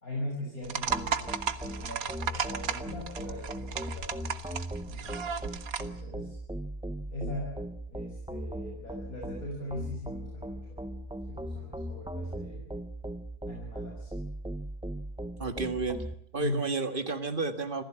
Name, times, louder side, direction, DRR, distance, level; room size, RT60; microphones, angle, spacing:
voice 1, 0.0-4.3 4.8-5.2 5.8-6.4 7.1-7.5 7.9-10.8 11.3-12.7 13.4-14.1 16.4-16.6, left 1 dB, 65° left, -2 dB, 6.6 m, -40 dB
sound 1, 0.6-6.0, right 7 dB, 65° right, 1.6 m, -35 dB
sound 2, 0.9-16.1, right 1 dB, 5° right, 0.4 m, -39 dB
voice 2, 15.4-16.0 16.3-17.8, right 3 dB, 35° right, 10 dB, 1.8 m, -31 dB
26.0 x 16.0 x 8.8 m, 0.73 s
omnidirectional pair, 1.7 m